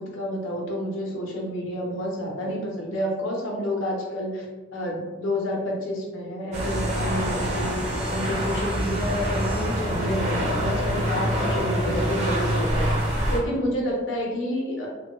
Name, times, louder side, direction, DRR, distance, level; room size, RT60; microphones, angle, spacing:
voice 1, 0.0-4.5 4.7-14.9, equal, 85° left, -2 dB, 0.8 m, -29 dB
sound 1, 6.5-13.4, equal, 35° right, 0.7 m, -25 dB
3.3 x 2.2 x 3.0 m, 1.3 s
head